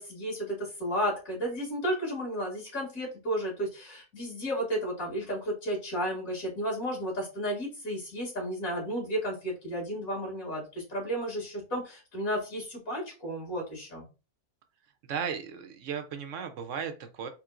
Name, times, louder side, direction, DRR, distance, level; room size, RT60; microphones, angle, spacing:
voice 1, 0.0-14.0, equal, 65° left, -3 dB, 2.7 m, -33 dB
voice 2, 15.1-17.3, right 7 dB, 65° right, 8 dB, 0.9 m, -35 dB
4.4 x 3.7 x 2.4 m, 0.31 s
omnidirectional pair, 1.6 m